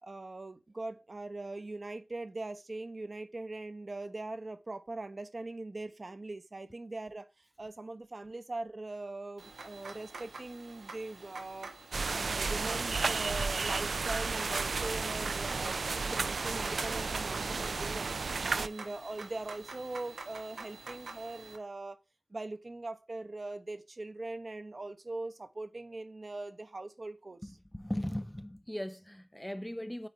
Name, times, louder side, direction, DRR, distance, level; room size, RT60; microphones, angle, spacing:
voice 1, 0.0-11.7 12.1-15.8 16.1-22.0 22.3-27.6, right 2 dB, 40° right, 0.8 m, -41 dB
sound 1, 9.4-21.6, right 3 dB, 85° right, 1.1 m, -47 dB
sound 2, 11.9-18.7, right 4 dB, 70° right, 0.3 m, -33 dB
voice 2, 27.7-30.1, equal, 5° left, 0.3 m, -38 dB
8.0 x 3.0 x 4.5 m
wide cardioid pair, 75°, 0 cm